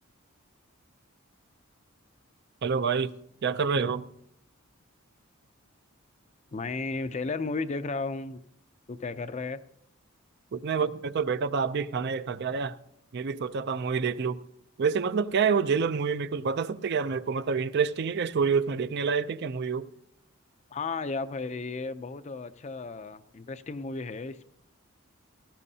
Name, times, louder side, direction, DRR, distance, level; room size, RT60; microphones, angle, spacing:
voice 1, 2.6-3.1 3.4-4.0 10.5-12.8 13.1-14.4 14.8-19.9, right 5 dB, 50° right, 0.4 m, -27 dB
voice 2, 6.5-8.4 8.9-9.6 20.7-24.4, left 3 dB, 35° left, 0.4 m, -34 dB
17.5 x 14.5 x 2.8 m
head